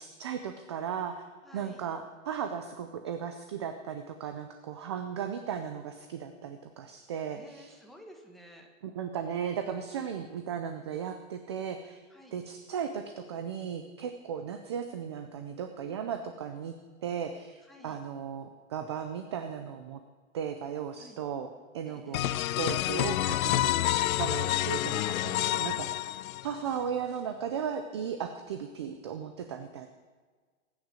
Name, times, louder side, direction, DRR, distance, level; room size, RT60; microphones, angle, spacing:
voice 1, 0.0-1.3 1.5-7.7 8.8-12.0 12.3-16.7 17.0-20.0 20.3-23.7 24.2-29.9, right 7 dB, 20° right, 8 dB, 0.4 m, -36 dB
voice 2, 1.4-1.8 7.3-8.7 9.9-10.2 12.1-12.4 17.6-18.0 21.0-21.2 21.9-22.3 26.6-26.8 27.2-27.5, equal, ahead, 0 dB, 1.4 m, -53 dB
sound 1, 22.1-26.7, left 14 dB, 90° left, 0.5 m, -28 dB
19.5 x 9.5 x 6.2 m, 1.5 s
hypercardioid pair, 155°, 40 cm